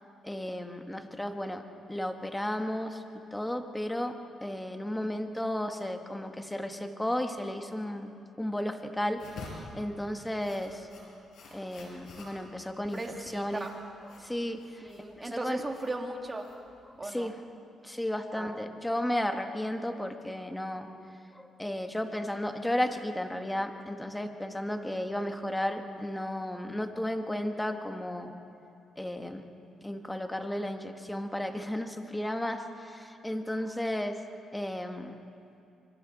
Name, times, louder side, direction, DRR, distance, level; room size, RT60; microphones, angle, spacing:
voice 1, 0.2-3.0 3.3-8.1 8.4-10.9 11.5-13.7 14.0-14.9 15.2-15.6 16.9-17.4 17.8-20.9 21.3-28.3 29.0-29.4 29.8-34.2 34.5-35.1, left 1 dB, 10° left, 5 dB, 1.6 m, -34 dB
sound 1, 9.1-17.0, left 3 dB, 70° left, 5.3 m, -49 dB
voice 2, 12.9-13.7 14.8-16.4 17.0-17.3 18.3-18.6, right 2 dB, 20° right, 2 dB, 2.4 m, -37 dB
25.5 x 25.0 x 4.2 m, 2.6 s
cardioid pair, 90°, 0 cm